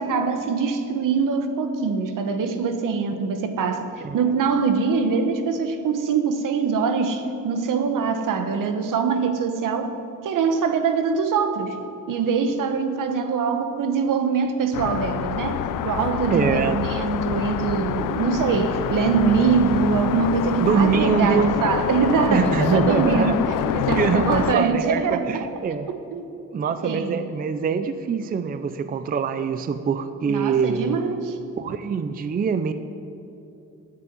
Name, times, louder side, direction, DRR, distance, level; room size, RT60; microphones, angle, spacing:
voice 1, 0.0-10.0 10.2-11.8 12.1-25.4 25.9-26.2 26.8-27.2 30.3-31.4, right 5 dB, 75° right, 7 dB, 1.1 m, -23 dB
sound 1, 14.7-24.5, left 11 dB, 75° left, 0.5 m, -26 dB
voice 2, 16.3-16.8 20.6-21.6 22.3-23.4 24.0-25.9 26.5-31.0 31.6-32.7, right 6 dB, 30° right, 10 dB, 0.4 m, -24 dB
9.8 x 7.4 x 9.4 m, 2.8 s
wide cardioid pair, 155°, 32 cm